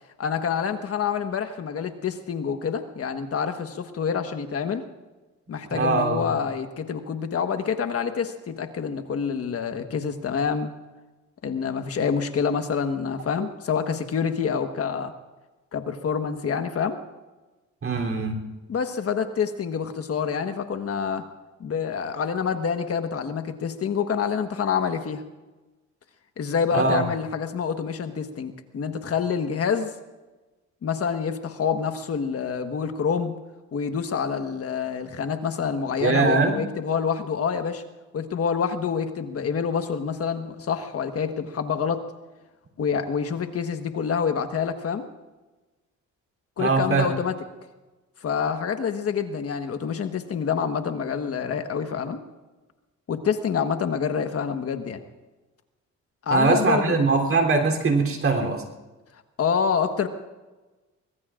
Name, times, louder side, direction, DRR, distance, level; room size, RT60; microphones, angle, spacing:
voice 1, 0.2-4.8 5.5-10.7 11.4-15.1 15.7-17.0 18.7-21.2 21.6-25.2 26.4-29.9 30.8-33.3 33.7-37.8 38.1-42.0 42.8-45.0 46.6-47.3 48.2-52.2 53.1-55.0 56.2-57.0 59.4-60.1, left 6 dB, 50° left, 7 dB, 1.4 m, -27 dB
voice 2, 5.7-6.3 17.8-18.4 26.7-27.1 36.0-36.6 46.6-47.1 56.3-58.6, right 3 dB, 45° right, 2 dB, 3.4 m, -22 dB
23.5 x 21.0 x 2.5 m, 1.2 s
cardioid pair, 90°, 30 cm